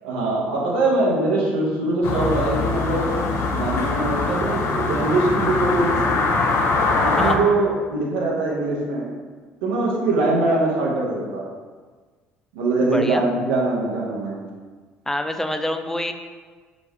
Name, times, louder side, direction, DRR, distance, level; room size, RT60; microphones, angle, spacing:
voice 1, 0.0-3.1 3.5-6.1 7.0-9.0 9.6-11.4 12.5-14.4, right 2 dB, 75° right, -3 dB, 0.9 m, -22 dB
sound 1, 2.0-7.4, left 3 dB, 50° left, 0.6 m, -22 dB
voice 2, 12.8-13.2 15.1-16.1, left 1 dB, 5° left, 6 dB, 0.4 m, -26 dB
5.0 x 2.4 x 3.5 m, 1.4 s
figure-of-eight pair, 55°, 6 cm